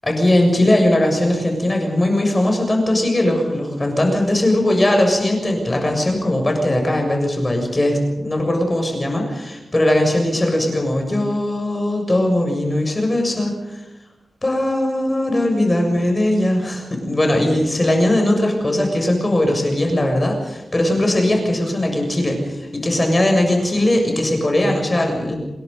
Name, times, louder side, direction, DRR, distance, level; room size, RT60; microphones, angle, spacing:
voice 1, 0.0-13.8 14.4-25.4, left 1 dB, 20° left, 3 dB, 7.0 m, -19 dB
28.0 x 21.5 x 5.5 m, 1.0 s
wide cardioid pair, 145°, 0 cm